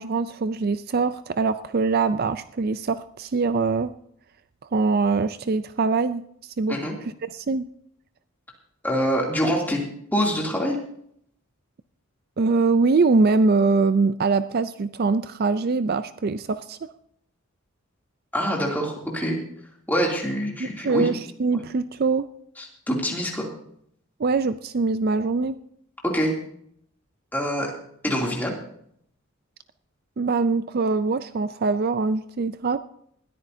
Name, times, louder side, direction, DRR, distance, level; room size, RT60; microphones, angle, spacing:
voice 1, 0.0-3.9 4.7-6.8 7.2-7.6 12.4-16.9 20.6-22.3 24.2-25.6 30.2-32.8, right 4 dB, 45° right, 13 dB, 0.4 m, -23 dB
voice 2, 8.8-9.8 10.1-10.8 18.3-19.4 19.9-21.1 21.5-21.6 22.6-23.5 26.0-26.3 27.3-27.7 28.0-28.5, equal, 10° left, -2 dB, 2.7 m, -25 dB
20.0 x 14.0 x 2.7 m, 0.68 s
head